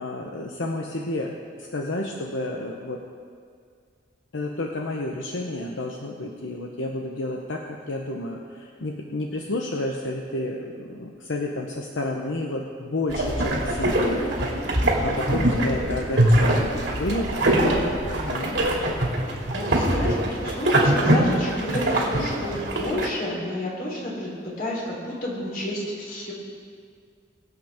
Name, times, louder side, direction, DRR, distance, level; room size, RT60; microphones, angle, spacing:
voice 1, 0.0-3.0 4.3-16.6 16.9-18.8, left 2 dB, 80° left, 1 dB, 0.9 m, -31 dB
sound 1, 13.1-23.1, right 1 dB, 65° right, 2.6 m, -23 dB
voice 2, 19.5-26.3, left 1 dB, 50° left, -5 dB, 3.7 m, -31 dB
23.0 x 8.0 x 3.6 m, 2.1 s
head